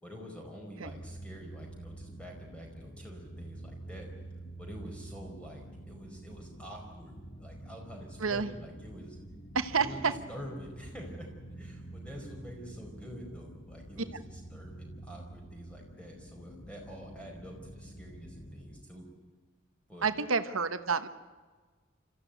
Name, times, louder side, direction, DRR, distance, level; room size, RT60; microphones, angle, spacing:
voice 1, 0.0-4.1 4.6-7.1 7.4-9.2 9.8-10.0 10.3-11.3 11.6-19.1 19.9-20.1, equal, 5° left, 1 dB, 4.9 m, -47 dB
sound 1, 0.8-18.8, right 1 dB, 50° left, 1.8 m, -47 dB
voice 2, 9.5-10.1 20.0-21.1, right 5 dB, 85° right, 11 dB, 1.1 m, -29 dB
26.5 x 14.5 x 9.1 m, 1.4 s
head